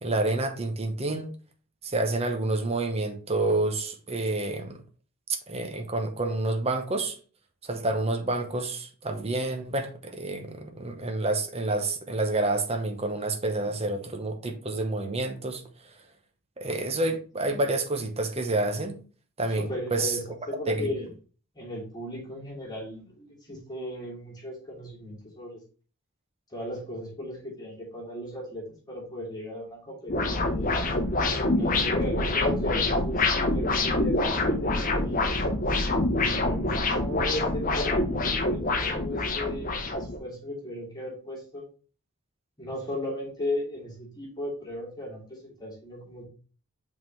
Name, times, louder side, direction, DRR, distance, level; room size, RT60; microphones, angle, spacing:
voice 1, 0.0-1.3 1.8-4.8 5.5-7.2 7.6-15.9 16.6-19.0 19.4-20.2 20.7-20.9, right 2 dB, 30° right, 0.9 m, -28 dB
voice 2, 19.6-20.2 20.5-21.1 21.5-25.6 26.5-30.8 31.5-35.2 36.1-41.6 42.6-46.2, left 1 dB, 20° left, 2.6 m, -36 dB
sound 1, 30.1-40.2, left 2 dB, 40° left, 0.9 m, -26 dB
5.6 x 3.8 x 4.4 m
head